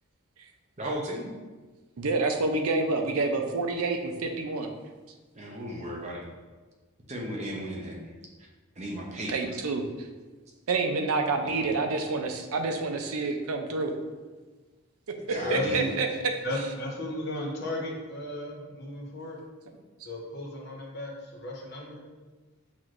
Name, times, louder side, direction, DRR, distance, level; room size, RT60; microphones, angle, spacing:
voice 1, 0.8-1.3 5.3-6.3 7.1-8.0 8.8-9.5 11.4-11.6 15.3-15.9, equal, 30° right, -1 dB, 0.7 m, -35 dB
voice 2, 2.0-4.7 9.3-10.1 10.7-13.9 15.5-16.1, right 3 dB, 80° right, 5 dB, 0.5 m, -28 dB
voice 3, 15.3-15.9 16.4-19.4 20.0-22.0, left 1 dB, 50° left, -2 dB, 0.8 m, -34 dB
6.0 x 3.0 x 2.5 m, 1.3 s
head